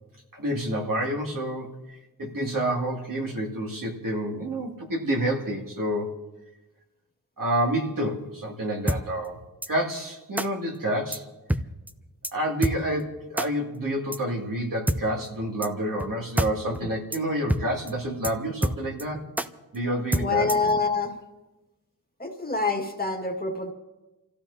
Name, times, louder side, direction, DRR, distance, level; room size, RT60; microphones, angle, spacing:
voice 1, 0.3-6.1 7.4-9.4 9.7-11.3 12.3-19.2 19.7-20.5, right 1 dB, 55° right, -1 dB, 2.6 m, -28 dB
sound 1, 8.9-9.0 9.6-9.7 10.4-10.5 11.1-11.2 11.5-11.6 11.9-12.0 12.2-12.3 12.6-12.8 13.4-13.5 14.1-14.2 14.9-15.0 15.6-15.7 16.0-16.1 16.4-16.5 16.8-16.9 17.1-17.2 17.5-17.6 17.9-18.0 18.2-18.3 18.6-19.0 19.4-19.5 20.1-20.7, right 1 dB, 5° right, 0.5 m, -25 dB
voice 2, 20.1-21.1 22.2-23.7, left 3 dB, 25° left, 2 dB, 1.9 m, -26 dB
29.5 x 15.0 x 2.8 m, 1.1 s
wide cardioid pair, 120°, 38 cm